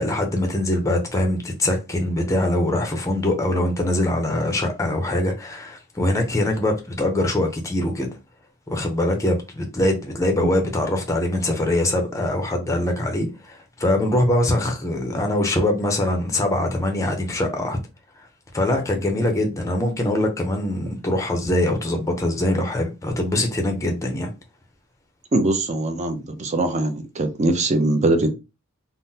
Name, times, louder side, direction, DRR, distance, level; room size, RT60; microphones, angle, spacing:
voice 1, 0.0-8.1 8.7-17.8 18.5-24.3, left 1 dB, 15° left, 0.5 m, -23 dB
voice 2, 25.3-28.3, right 2 dB, 30° right, 0.5 m, -22 dB
3.7 x 2.0 x 2.7 m
head